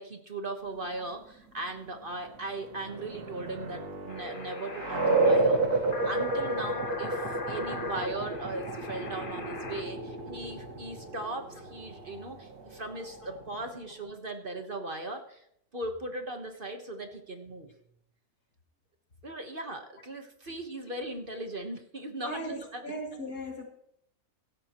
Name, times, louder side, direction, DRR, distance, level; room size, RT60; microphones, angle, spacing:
voice 1, 0.0-15.4 15.7-17.7 19.2-22.9, right 2 dB, 35° right, 5 dB, 1.4 m, -38 dB
sound 1, 2.4-13.8, right 2 dB, 80° right, 2.3 m, -31 dB
sound 2, 4.1-9.8, left 4 dB, 35° left, 1.3 m, -40 dB
voice 2, 22.2-23.6, equal, 80° left, 1 dB, 3.0 m, -38 dB
17.0 x 13.0 x 3.0 m, 0.72 s
omnidirectional pair, 1.6 m